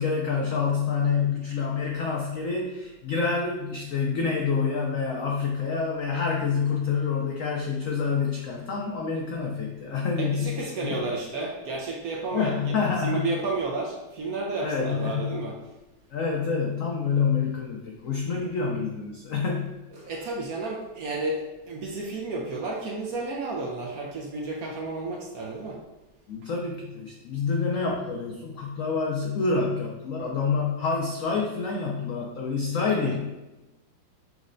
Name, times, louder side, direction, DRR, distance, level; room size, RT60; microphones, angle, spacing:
voice 1, 0.0-11.0 12.3-13.3 14.6-15.5 16.1-19.7 26.3-33.2, left 5 dB, 85° left, -1 dB, 0.7 m, -27 dB
voice 2, 10.2-12.7 13.0-15.5 19.9-25.8 33.0-33.2, right 3 dB, 65° right, -1 dB, 0.9 m, -32 dB
6.3 x 3.2 x 2.5 m, 1.0 s
omnidirectional pair, 2.1 m